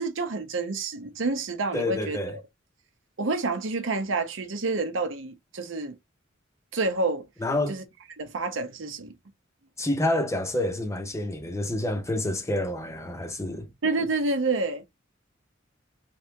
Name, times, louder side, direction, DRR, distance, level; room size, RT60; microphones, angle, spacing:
voice 1, 0.0-2.2 3.2-6.0 6.7-7.3 7.7-7.8 8.2-9.1 13.8-14.8, right 3 dB, 85° right, 0.8 m, -28 dB
voice 2, 1.7-2.4 7.4-7.8 9.8-13.7, left 1 dB, 15° left, 0.7 m, -28 dB
3.4 x 2.9 x 3.4 m
head